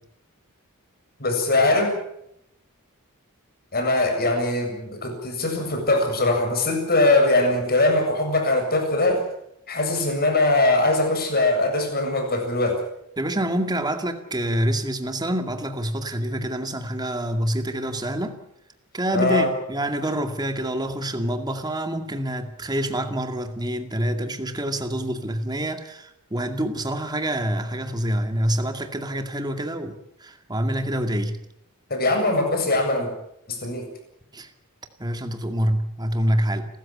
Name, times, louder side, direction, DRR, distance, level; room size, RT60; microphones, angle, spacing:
voice 1, 1.2-2.0 3.7-9.2 9.7-12.8 19.1-19.5 31.9-33.1 33.5-33.8, left 2 dB, 45° left, 4 dB, 7.5 m, -21 dB
voice 2, 13.2-18.4 18.9-31.4 34.3-34.5 35.0-36.7, right 1 dB, 20° right, 7 dB, 2.2 m, -26 dB
29.5 x 14.5 x 8.7 m, 0.77 s
head